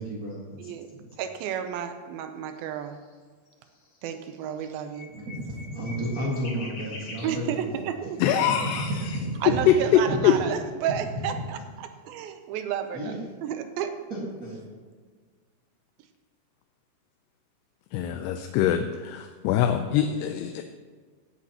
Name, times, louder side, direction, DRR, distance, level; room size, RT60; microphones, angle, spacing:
voice 1, 0.0-0.5 0.9-1.0 5.1-7.7 8.7-9.6 10.1-10.2 10.9-11.0 12.9-13.2 14.1-14.7, right 1 dB, 45° right, -7 dB, 1.1 m, -32 dB
voice 2, 1.2-3.0 4.0-5.1 7.2-8.2 9.4-13.9, right 9 dB, 80° right, 7 dB, 2.3 m, -32 dB
sound 1, 2.5-3.1 3.5-7.3, left 1 dB, 40° left, 2.2 m, -44 dB
voice 3, 8.2-9.2 9.7-9.8 10.2-10.3 17.9-20.6, left 11 dB, 85° left, 6 dB, 2.7 m, -24 dB
17.0 x 8.4 x 2.9 m, 1.5 s
omnidirectional pair, 4.7 m